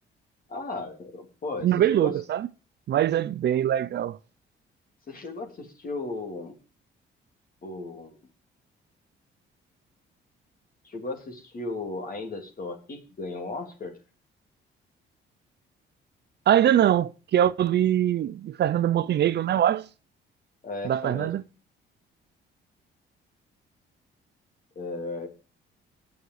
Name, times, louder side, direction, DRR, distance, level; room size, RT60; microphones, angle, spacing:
voice 1, 0.5-2.2 5.1-6.5 7.6-8.2 10.8-14.0 20.6-21.3 24.7-25.3, left 2 dB, 45° left, 3.2 m, -35 dB
voice 2, 1.6-2.5 2.9-4.2 16.5-19.9 20.8-21.4, right 11 dB, 60° right, 0.5 m, -23 dB
9.4 x 6.4 x 8.0 m
cardioid pair, 90°, 20 cm